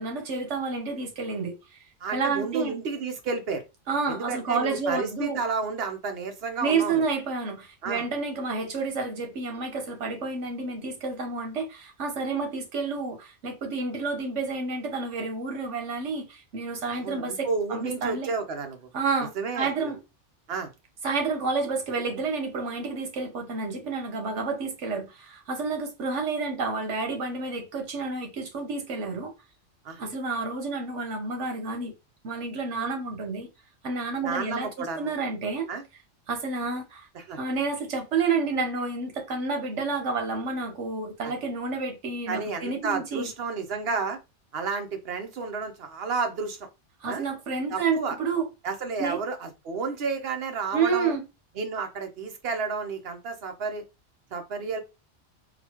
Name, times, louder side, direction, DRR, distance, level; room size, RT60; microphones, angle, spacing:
voice 1, 0.0-1.8 2.1-2.7 3.9-5.4 6.6-18.3 18.9-20.0 21.0-29.3 30.0-31.9 32.2-33.5 33.8-35.7 36.3-37.1 37.4-43.3 47.0-48.5 49.0-49.2 50.7-51.2, right 4 dB, 75° right, 1.3 m, -30 dB
voice 2, 2.0-3.6 4.1-7.0 7.8-8.0 16.9-18.9 19.4-19.9 20.5-20.7 29.8-30.0 34.2-35.1 35.7-35.8 37.1-37.4 41.2-41.3 42.3-44.2 44.5-46.7 47.0-47.3 47.7-48.2 48.6-51.1 51.6-53.8 54.3-54.8, right 4 dB, 60° right, 0.9 m, -31 dB
4.0 x 2.2 x 2.9 m
omnidirectional pair, 1.2 m